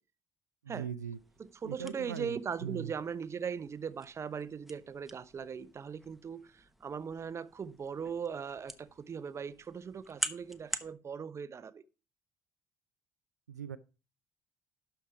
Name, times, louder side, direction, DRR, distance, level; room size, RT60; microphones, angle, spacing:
voice 1, 0.6-1.2 1.6-2.9 13.5-13.8, right 8 dB, 85° right, 0.4 m, -40 dB
sound 1, 1.1-10.9, right 1 dB, ahead, 1.0 m, -46 dB
voice 2, 1.4-6.5 6.8-11.8, right 6 dB, 30° right, 0.7 m, -39 dB
12.0 x 4.6 x 5.8 m
figure-of-eight pair, 55°, 9 cm